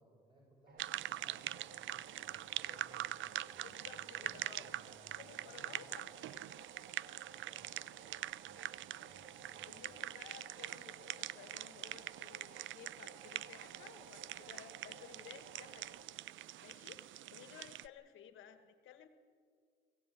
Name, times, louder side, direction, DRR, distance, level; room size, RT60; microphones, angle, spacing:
voice 1, 0.0-5.8 7.2-7.6 7.8-10.0, right 1 dB, 25° right, -3 dB, 6.5 m, -63 dB
sound 1, 0.7-16.0, right 5 dB, 55° right, 2.2 m, -58 dB
sound 2, 0.8-17.9, right 14 dB, 75° right, 0.5 m, -44 dB
voice 2, 3.6-4.6 5.2-6.4 9.6-16.0 16.6-19.1, left 9 dB, 85° left, 9 dB, 1.9 m, -56 dB
23.0 x 16.0 x 9.4 m, 2.1 s
cardioid pair, 90°, 20 cm